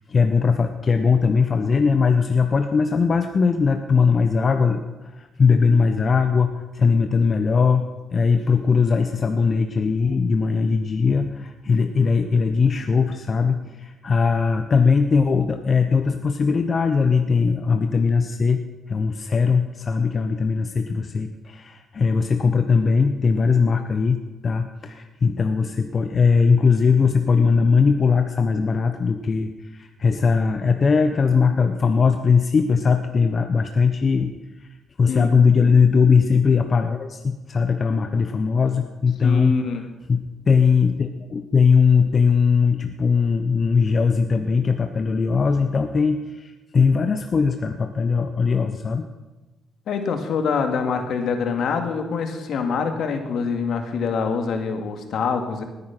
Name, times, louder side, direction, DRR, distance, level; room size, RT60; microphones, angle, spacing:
voice 1, 0.1-18.6 18.9-34.3 34.6-39.6 40.1-49.1, left 5 dB, 40° left, 7 dB, 0.9 m, -20 dB
voice 2, 39.2-39.8 49.9-55.6, left 5 dB, 65° left, 6 dB, 2.1 m, -25 dB
19.0 x 9.4 x 6.0 m, 1.1 s
cardioid pair, 90°, 0 cm